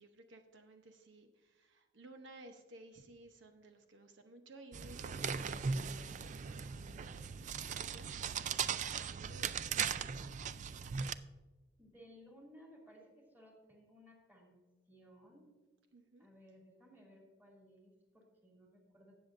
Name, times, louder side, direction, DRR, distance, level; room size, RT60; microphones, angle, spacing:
voice 1, 0.0-10.2 15.9-16.3, right 2 dB, 80° right, 5 dB, 0.9 m, -57 dB
sound 1, 4.7-11.1, right 6 dB, 40° right, 0.3 m, -38 dB
voice 2, 11.8-15.5 16.2-19.1, equal, 10° right, -2 dB, 2.6 m, -60 dB
17.5 x 7.0 x 2.6 m, 1.2 s
head